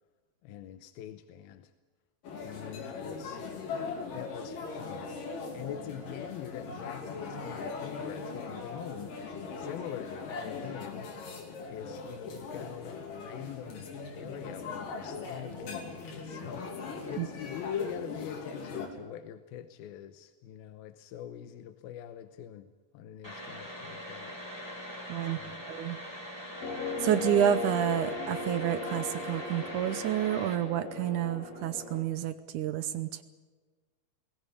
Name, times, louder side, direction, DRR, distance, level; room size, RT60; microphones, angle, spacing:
voice 1, 0.4-1.7 2.4-3.4 4.1-5.2 5.5-9.3 9.6-11.1 11.7-24.3 25.2-25.6, left 11 dB, 90° left, 10 dB, 2.8 m, -44 dB
sound 1, 2.2-18.9, left 4 dB, 65° left, 4.5 m, -40 dB
sound 2, 23.2-30.5, equal, 5° left, 4.1 m, -42 dB
voice 2, 25.1-25.4 25.7-26.0 27.0-33.2, right 10 dB, 70° right, 13 dB, 2.0 m, -29 dB
sound 3, 26.6-32.0, left 4 dB, 45° left, 3.2 m, -37 dB
21.0 x 17.0 x 9.9 m, 1.3 s
omnidirectional pair, 4.2 m